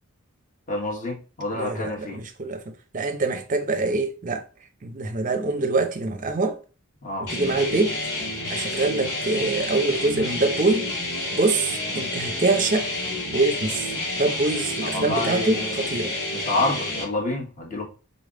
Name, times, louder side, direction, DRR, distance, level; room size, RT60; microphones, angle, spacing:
voice 1, 0.7-2.3 7.0-7.3 14.4-15.8 16.3-17.8, left 2 dB, 35° left, 1.3 m, -28 dB
voice 2, 1.5-4.4 4.8-6.6 7.2-8.0 8.5-10.9 11.3-12.9 13.3-13.9 14.1-16.1, right 3 dB, 35° right, 0.6 m, -24 dB
sound 1, 7.3-17.0, left 2 dB, 90° left, 2.5 m, -29 dB
4.0 x 3.3 x 3.7 m
head